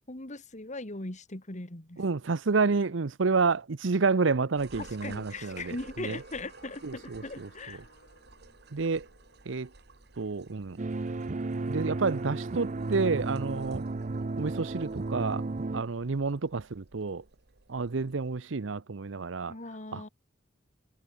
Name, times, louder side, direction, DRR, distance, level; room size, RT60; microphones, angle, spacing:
voice 1, 0.1-2.0 4.8-7.8 19.5-20.1, left 2 dB, 40° left, 2.5 m, -39 dB
voice 2, 2.0-6.2 6.8-7.5 8.7-9.1 9.5-9.7 10.2-10.8 11.7-13.8 14.4-15.5 15.7-17.2 17.7-19.5 19.9-20.1, right 4 dB, 80° right, 0.7 m, -29 dB
sound 1, 4.3-11.1, left 4 dB, 60° left, 5.1 m, -63 dB
sound 2, 4.6-18.4, right 3 dB, 60° right, 1.5 m, -54 dB
sound 3, 10.8-15.8, right 3 dB, 40° right, 0.6 m, -33 dB
head